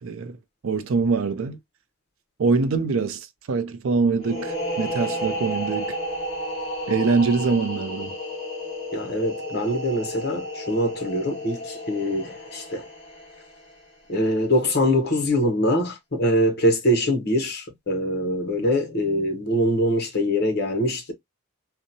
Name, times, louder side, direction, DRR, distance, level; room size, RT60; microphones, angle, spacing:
voice 1, 0.0-0.4 0.6-1.6 2.4-6.0 6.9-8.2, right 4 dB, 65° right, 0.4 m, -24 dB
sound 1, 4.2-13.7, equal, 25° left, 1.1 m, -32 dB
voice 2, 8.9-12.8 14.1-21.1, equal, 45° left, 0.7 m, -23 dB
2.7 x 2.1 x 2.6 m
head